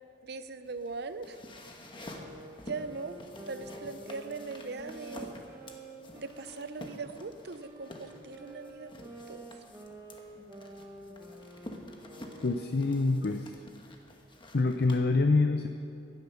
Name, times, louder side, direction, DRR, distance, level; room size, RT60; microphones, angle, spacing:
voice 1, 0.2-1.4 2.0-2.1 2.6-3.2 3.5-5.3 6.1-8.9 9.3-9.4, right 4 dB, 60° right, 12 dB, 0.6 m, -40 dB
sound 1, 0.6-15.0, left 1 dB, 25° left, 1.2 m, -49 dB
sound 2, 1.9-7.1 7.6-13.2, right 1 dB, 15° right, 1.5 m, -49 dB
voice 2, 12.4-13.5 14.5-15.7, left 3 dB, 55° left, 6 dB, 0.6 m, -26 dB
16.0 x 11.5 x 5.7 m, 2.4 s
head